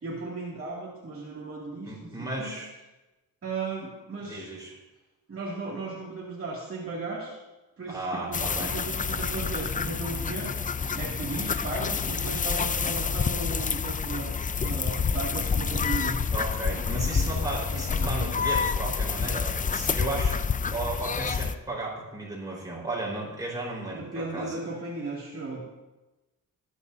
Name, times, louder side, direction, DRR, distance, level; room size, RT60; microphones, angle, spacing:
voice 1, 0.0-2.5 3.4-4.5 5.3-7.4 7.8-10.5 10.9-16.2 17.0-17.3 17.7-18.3 23.9-25.6, right 3 dB, 40° right, -6 dB, 2.5 m, -36 dB
voice 2, 1.9-2.7 4.3-4.8 7.9-8.7 16.3-20.3 20.7-24.5, right 2 dB, 10° right, -5 dB, 4.5 m, -34 dB
sound 1, 8.3-21.6, left 5 dB, 25° left, 0.4 m, -28 dB
24.5 x 9.8 x 2.8 m, 1.1 s
wide cardioid pair, 150°, 35 cm